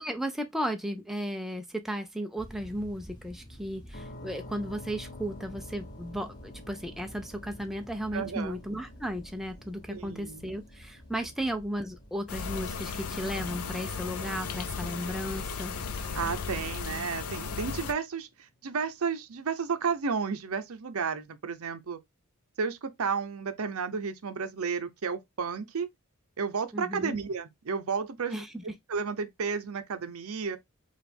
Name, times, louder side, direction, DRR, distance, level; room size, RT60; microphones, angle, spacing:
voice 1, 0.0-15.8 26.7-27.2 28.3-28.7, equal, ahead, 0.4 m, -35 dB
sound 1, 2.4-17.0, equal, 20° left, 1.1 m, -50 dB
sound 2, 3.9-17.6, left 2 dB, 40° left, 0.6 m, -52 dB
voice 2, 8.1-8.6 9.9-10.4 16.1-22.0 22.6-25.9 26.4-28.4 28.9-30.6, right 5 dB, 70° right, 0.6 m, -32 dB
sound 3, 12.3-17.9, left 5 dB, 85° left, 0.6 m, -35 dB
4.8 x 2.4 x 3.4 m
head